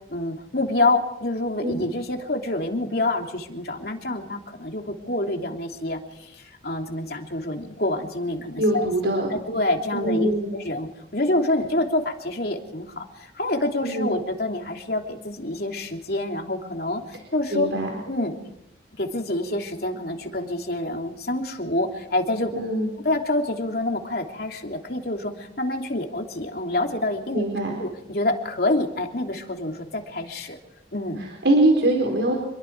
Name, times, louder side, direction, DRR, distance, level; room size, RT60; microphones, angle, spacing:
voice 1, 0.1-17.7 18.1-18.4 19.0-22.5 23.0-27.4 27.8-30.6 30.9-31.2, left 2 dB, 60° left, 2 dB, 3.2 m, -27 dB
voice 2, 8.6-9.3 9.9-10.6 13.8-14.1 17.5-17.9 22.5-22.9 27.3-27.8 31.2-32.4, right 1 dB, 85° right, 1 dB, 4.6 m, -22 dB
27.5 x 22.0 x 4.8 m, 0.81 s
head